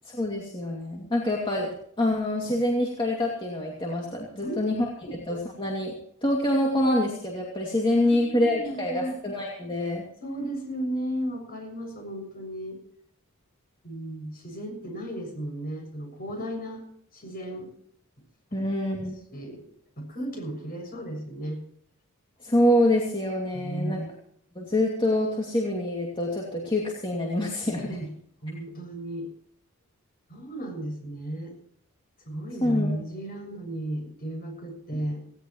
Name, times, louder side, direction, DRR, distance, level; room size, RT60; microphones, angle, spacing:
voice 1, 0.0-4.8 5.1-6.0 6.2-10.0 18.5-19.2 22.4-24.0 24.6-28.0 32.6-32.9, left 1 dB, 20° left, -2 dB, 2.5 m, -26 dB
voice 2, 4.4-5.1 8.0-9.2 10.2-12.8 13.8-16.9 17.1-17.7 18.5-18.6 19.3-19.6 20.0-21.6 23.5-24.1 27.8-28.1 28.4-29.3 30.3-31.6 32.3-35.2, right 1 dB, 40° left, 2 dB, 6.9 m, -34 dB
18.5 x 17.5 x 3.1 m, 0.67 s
head